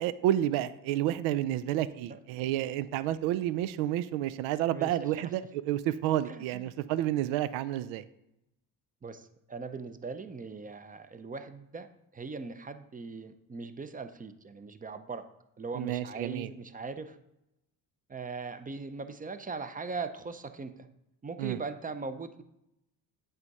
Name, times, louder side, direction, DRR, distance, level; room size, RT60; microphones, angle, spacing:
voice 1, 0.0-8.0 15.7-16.5 21.4-21.6, right 12 dB, 80° right, 15 dB, 0.5 m, -30 dB
voice 2, 6.3-6.7 9.0-11.9 12.1-15.3 15.6-17.2 18.1-20.9 21.2-22.4, right 4 dB, 20° right, 10 dB, 0.5 m, -40 dB
8.0 x 3.6 x 5.3 m, 0.83 s
supercardioid pair, 80°, 47 cm